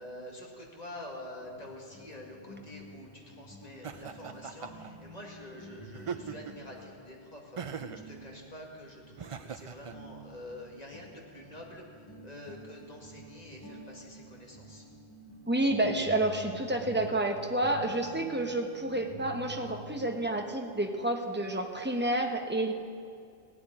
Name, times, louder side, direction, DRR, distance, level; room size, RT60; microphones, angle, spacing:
voice 1, 0.0-14.9, left 1 dB, 35° left, -1 dB, 2.1 m, -47 dB
sound 1, 1.4-9.4 9.9-20.7, right 1 dB, 20° left, 1.5 m, -50 dB
Laughter, 3.8-4.9 5.9-6.7 7.6-8.1 9.2-9.9, right 7 dB, 45° right, 0.4 m, -40 dB
voice 2, 15.5-22.7, right 1 dB, 10° right, 3 dB, 1.0 m, -29 dB
16.5 x 7.9 x 9.9 m, 2.3 s
omnidirectional pair, 1.1 m